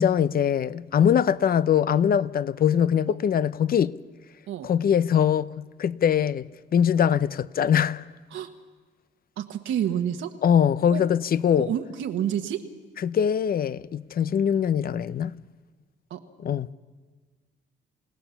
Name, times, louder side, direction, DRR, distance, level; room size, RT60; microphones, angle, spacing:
voice 1, 0.0-4.0 4.6-8.1 10.4-11.7 13.0-15.4 16.4-16.7, left 8 dB, 50° left, 0.6 m, -22 dB
voice 2, 9.4-10.3 10.9-11.0 11.6-12.6 16.1-16.2, right 10 dB, 80° right, 1.3 m, -29 dB
28.5 x 16.5 x 7.1 m
cardioid pair, 90°, 20 cm